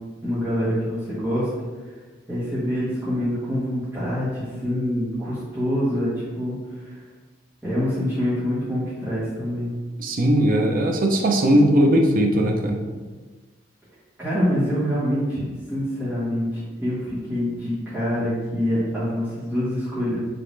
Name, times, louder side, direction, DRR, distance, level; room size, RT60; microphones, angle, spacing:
voice 1, 0.2-1.5 2.3-6.6 6.8-6.9 7.6-9.7 14.2-20.2, equal, 10° right, -13 dB, 1.3 m, -25 dB
voice 2, 10.0-12.8, right 1 dB, 50° right, 2 dB, 0.5 m, -19 dB
5.2 x 2.9 x 3.2 m, 1.3 s
head